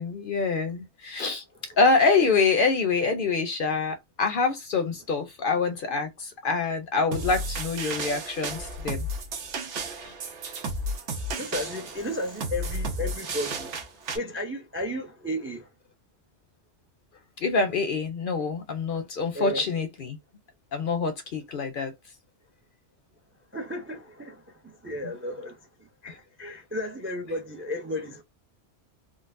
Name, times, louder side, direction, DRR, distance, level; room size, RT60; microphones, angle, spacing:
voice 1, 0.0-1.4 1.8-9.1 17.4-20.2 20.7-21.9, left 4 dB, 60° left, 0.6 m, -25 dB
sound 1, 7.1-14.2, right 1 dB, 90° right, 1.1 m, -33 dB
voice 2, 10.7-13.8 14.1-15.7 19.3-19.7 23.5-28.2, left 1 dB, 20° right, 0.3 m, -34 dB
3.8 x 2.1 x 2.5 m
omnidirectional pair, 1.2 m